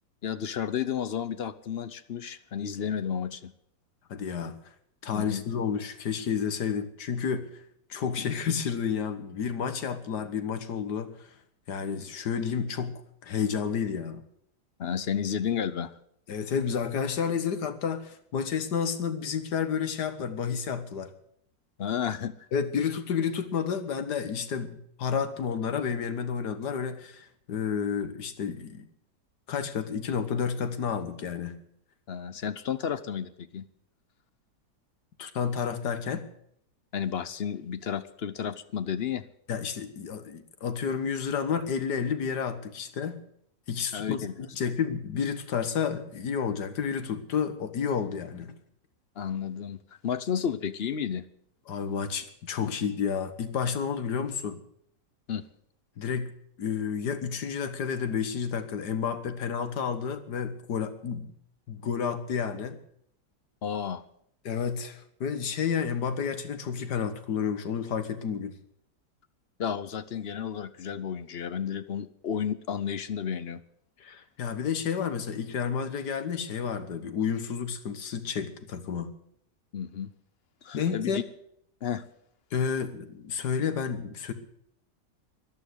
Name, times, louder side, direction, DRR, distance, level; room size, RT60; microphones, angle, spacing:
voice 1, 0.2-3.5 5.1-5.4 8.2-8.3 14.8-15.9 21.8-22.5 32.1-33.7 36.9-39.2 43.9-44.5 49.2-49.8 50.0-51.2 52.6-52.7 55.3-55.4 63.6-64.0 69.6-73.6 79.7-80.1 80.6-81.2 81.8-82.0, left 8 dB, 55° left, 13 dB, 0.7 m, -32 dB
voice 2, 4.1-4.6 5.0-7.5 7.9-11.3 11.7-14.2 16.3-21.1 22.5-28.9 29.5-31.6 35.2-36.3 39.5-43.2 43.7-48.5 51.7-54.6 56.0-56.3 56.6-61.3 61.7-62.8 64.5-68.6 74.0-79.1 80.7-81.2 82.5-84.3, left 6 dB, 75° left, 10 dB, 1.9 m, -30 dB
13.5 x 12.0 x 8.1 m, 0.69 s
omnidirectional pair, 1.8 m